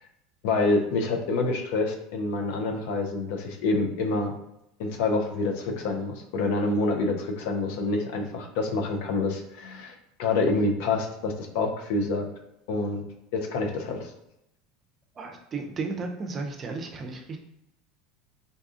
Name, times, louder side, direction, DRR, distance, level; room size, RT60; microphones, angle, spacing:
voice 1, 0.4-4.3 4.8-12.3 12.7-13.0 13.3-14.1, left 3 dB, 65° left, 2 dB, 0.5 m, -27 dB
voice 2, 15.2-17.4, right 3 dB, 35° right, 4 dB, 0.5 m, -34 dB
3.9 x 2.4 x 2.5 m, 0.84 s
hypercardioid pair, 75°, 0 cm